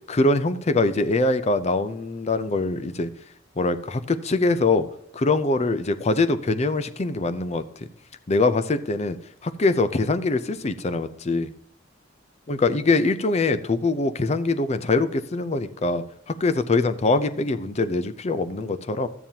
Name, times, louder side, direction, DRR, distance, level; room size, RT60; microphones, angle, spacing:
voice 1, 0.1-3.1 3.6-4.9 5.1-7.6 8.3-9.2 9.4-11.5 12.5-19.1, left 3 dB, 35° left, 12 dB, 0.5 m, -23 dB
13.0 x 8.9 x 2.8 m, 0.68 s
head